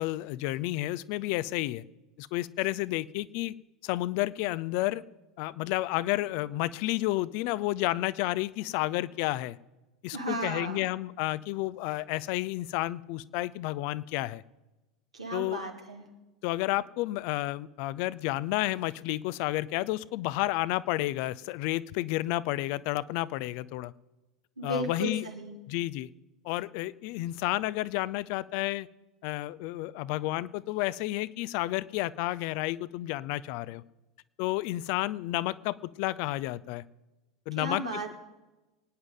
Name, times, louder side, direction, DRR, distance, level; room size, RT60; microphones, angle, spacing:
voice 1, 0.0-1.8 2.2-3.5 3.8-5.0 5.4-9.6 10.0-14.4 15.3-15.6 16.4-23.9 24.6-25.3 25.7-26.1 26.4-28.9 29.2-33.8 34.4-36.8 37.5-37.8, left 17 dB, 55° left, 18 dB, 0.5 m, -31 dB
voice 2, 10.1-10.8 15.1-16.0 24.6-25.6 37.6-38.1, right 2 dB, 90° right, 1 dB, 2.3 m, -35 dB
24.5 x 9.5 x 3.9 m, 1.1 s
figure-of-eight pair, 85°, 3 cm